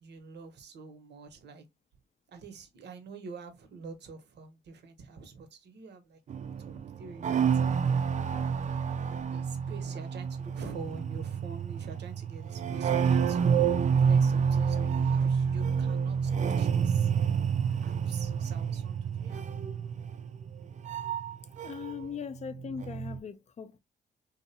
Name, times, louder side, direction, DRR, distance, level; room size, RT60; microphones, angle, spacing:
voice 1, 0.0-1.6 2.3-7.6 8.3-13.6 14.0-17.1 17.8-19.9, right 4 dB, 65° right, 0.7 m, -46 dB
sound 1, 6.3-22.1 22.4-23.2, right 7 dB, 40° right, 0.4 m, -29 dB
voice 2, 21.6-23.8, left 6 dB, 40° left, 0.4 m, -39 dB
2.6 x 2.0 x 2.7 m
supercardioid pair, 60°, 19 cm